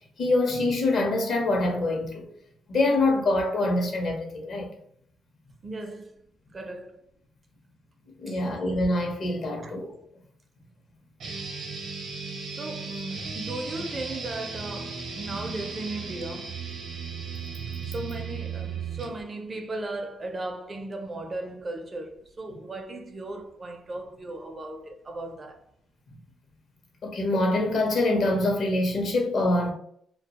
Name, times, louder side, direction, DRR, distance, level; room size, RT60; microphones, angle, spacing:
voice 1, 0.2-2.3 2.7-4.7 8.2-9.9 17.8-17.9 27.0-29.7, left 2 dB, 60° left, 0.7 m, -25 dB
voice 2, 5.6-6.3 6.5-7.0 8.3-8.4 9.6-9.8 12.6-16.6 17.8-25.6, right 2 dB, 30° right, 0.4 m, -36 dB
sound 1, 11.2-19.2, right 5 dB, 70° right, 0.7 m, -36 dB
2.3 x 2.2 x 2.8 m
cardioid pair, 90°, 0 cm